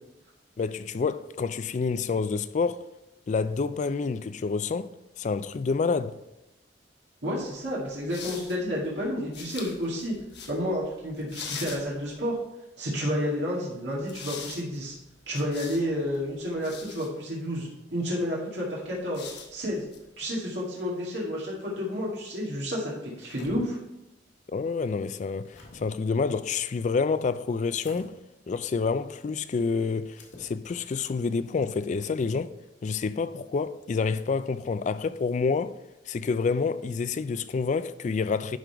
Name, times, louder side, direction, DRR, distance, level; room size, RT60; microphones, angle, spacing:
voice 1, 0.6-2.8 3.3-4.9 5.2-6.2 24.5-28.1 28.5-32.5 32.8-35.8 36.1-38.6, left 4 dB, 40° left, 0.3 m, -28 dB
voice 2, 7.2-10.2 10.5-12.4 12.8-14.9 15.3-19.8 20.2-23.8, equal, 70° right, 2.1 m, -30 dB
sound 1, 7.6-12.4 13.9-17.1 18.9-20.1, left 6 dB, 65° left, 1.1 m, -44 dB
sound 2, 23.0-23.6 25.0-25.8 27.7-28.1 30.1-30.5, left 2 dB, 85° left, 2.0 m, -49 dB
11.5 x 3.9 x 4.6 m
head